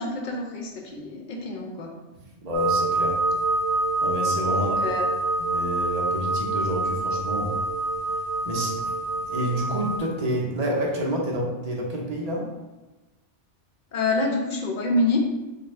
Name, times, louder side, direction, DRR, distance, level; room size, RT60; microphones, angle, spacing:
voice 1, 0.0-1.9 4.5-5.1 13.9-15.2, left 2 dB, 55° left, 1 dB, 0.5 m, -26 dB
voice 2, 2.4-3.2 4.0-4.9 5.4-7.6 8.5-8.8 9.3-12.5, equal, 40° right, -2 dB, 0.6 m, -28 dB
sound 1, 2.5-10.0, right 2 dB, 70° right, 1.0 m, -26 dB
4.0 x 2.3 x 3.1 m, 1.1 s
omnidirectional pair, 1.2 m